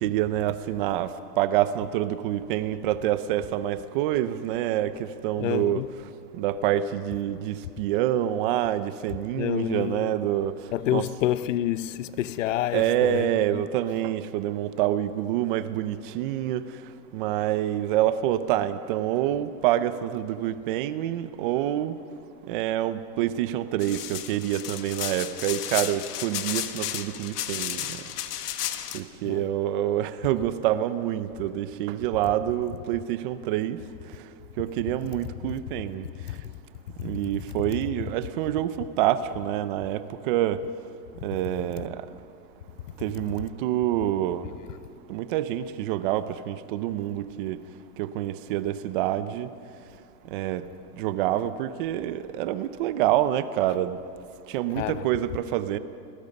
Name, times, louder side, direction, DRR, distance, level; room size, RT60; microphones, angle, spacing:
voice 1, 0.0-5.8 6.3-10.5 10.9-11.0 12.7-16.7 17.1-22.0 22.5-28.0 28.9-33.8 34.6-36.1 37.0-40.6 41.2-42.0 43.0-44.5 45.1-47.6 48.0-49.5 50.3-50.6 51.0-54.0 54.5-55.8, right 12 dB, 35° right, 0.8 m, -27 dB
voice 2, 5.4-6.0 9.4-10.2 10.7-13.6 29.2-29.5 35.4-35.6 36.3-36.4 37.0-37.4 54.7-55.1, left 13 dB, 55° left, 0.7 m, -29 dB
sound 1, 23.8-29.0, left 11 dB, 80° left, 1.5 m, -33 dB
29.5 x 19.0 x 5.4 m
supercardioid pair, 160°, 47 cm